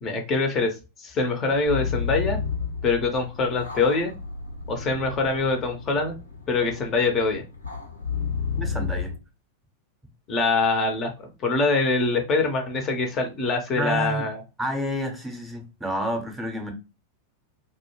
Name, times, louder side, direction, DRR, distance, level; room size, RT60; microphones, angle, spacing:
voice 1, 0.0-2.4 2.8-4.1 4.7-6.2 6.5-7.4 10.3-14.4, left 3 dB, 30° left, 0.5 m, -24 dB
sound 1, 1.5-9.2, left 6 dB, 85° left, 0.6 m, -32 dB
voice 2, 8.6-9.2 13.8-14.3 14.6-16.7, right 1 dB, 5° right, 0.7 m, -29 dB
2.2 x 2.1 x 3.0 m
figure-of-eight pair, 90°, 0 cm